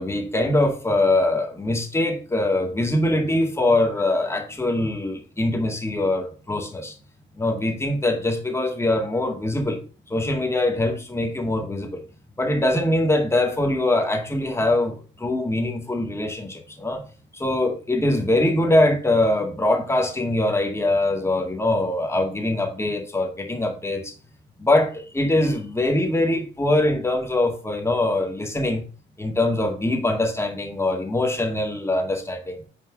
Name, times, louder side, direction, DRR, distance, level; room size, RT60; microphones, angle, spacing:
voice 1, 0.0-6.9 7.4-9.8 10.1-12.0 12.4-17.0 17.3-24.1 24.6-28.8 29.2-32.6, left 1 dB, 15° left, 1.9 m, -23 dB
6.1 x 4.5 x 4.8 m
cardioid pair, 90°, 20 cm